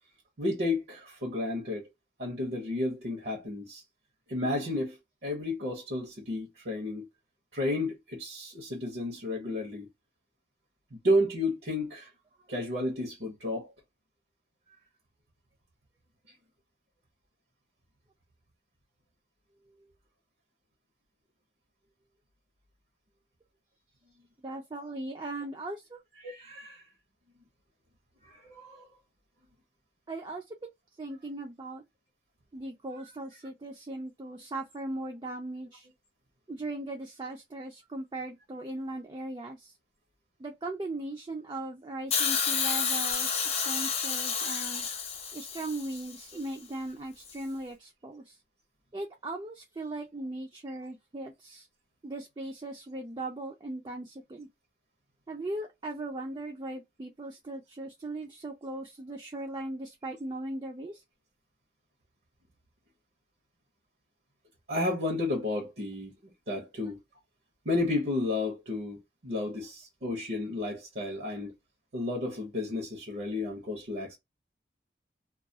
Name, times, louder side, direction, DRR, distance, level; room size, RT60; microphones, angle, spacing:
voice 1, 0.4-1.9 2.2-3.8 4.3-5.0 5.2-7.1 7.5-9.9 10.9-12.1 12.5-13.7 26.2-26.8 28.2-28.9 33.0-33.1 64.7-67.0 67.6-71.5 71.9-74.2, left 1 dB, 65° right, 0.8 m, -32 dB
voice 2, 24.4-26.0 30.1-30.7 31.0-31.8 32.5-35.9 36.5-39.7 40.4-44.9 45.3-48.3 48.9-51.7 52.0-54.5 55.3-61.0, right 2 dB, 25° right, 0.3 m, -38 dB
Hiss, 42.1-46.2 47.3-47.4, left 6 dB, 35° left, 0.6 m, -30 dB
2.3 x 2.2 x 2.6 m
head